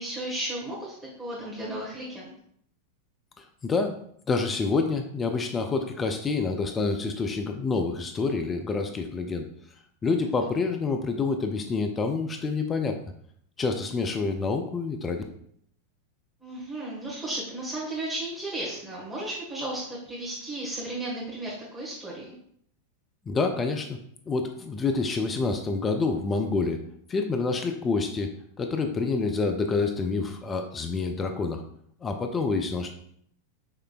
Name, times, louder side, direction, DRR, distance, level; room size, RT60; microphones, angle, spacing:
voice 1, 0.0-2.3 10.4-10.5 16.4-22.3, right 1 dB, 10° right, -7 dB, 1.5 m, -34 dB
voice 2, 3.4-4.0 4.3-9.5 10.0-13.0 13.6-15.2 23.3-24.0 24.3-26.8 27.1-31.6 32.0-32.9, left 4 dB, 20° left, 5 dB, 0.4 m, -27 dB
5.5 x 3.2 x 2.3 m, 0.67 s
figure-of-eight pair, 90°, 0 cm